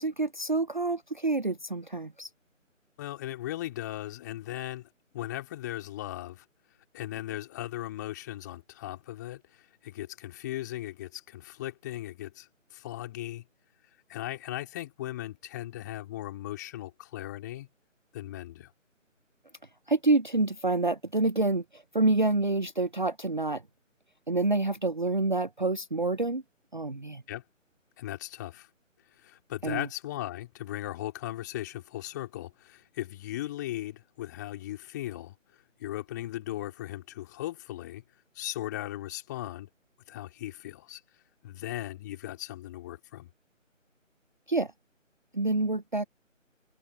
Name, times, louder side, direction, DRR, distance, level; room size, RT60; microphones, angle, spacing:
voice 1, 0.0-2.3 19.9-23.6 24.3-26.4 26.7-27.2 29.6-29.9 44.5-44.7 45.3-46.0, right 2 dB, 35° right, 0.6 m, -27 dB
voice 2, 3.0-4.9 5.1-6.5 6.9-13.4 14.1-17.7 18.1-18.7 27.3-27.4 28.0-28.7 29.1-35.3 35.8-38.0 38.3-39.7 40.1-41.0 41.4-43.3, left 14 dB, 15° left, 3.7 m, -38 dB
figure-of-eight pair, 155°, 39 cm